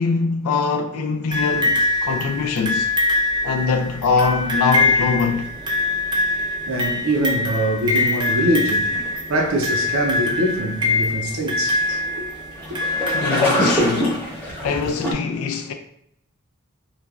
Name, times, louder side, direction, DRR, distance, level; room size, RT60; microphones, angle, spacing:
voice 1, 0.0-2.9 3.4-5.5 11.9-12.0 13.1-14.2 14.6-15.7, left 5 dB, 85° left, 0.3 m, -23 dB
sound 1, 1.3-14.1 15.1-15.2, left 2 dB, 20° right, 0.4 m, -23 dB
sound 2, 4.2-15.1, equal, 10° left, 0.8 m, -29 dB
voice 2, 6.7-8.9 9.3-11.8 12.2-12.3 12.7-12.8, right 1 dB, 70° right, 0.6 m, -23 dB
3.0 x 2.2 x 2.3 m
head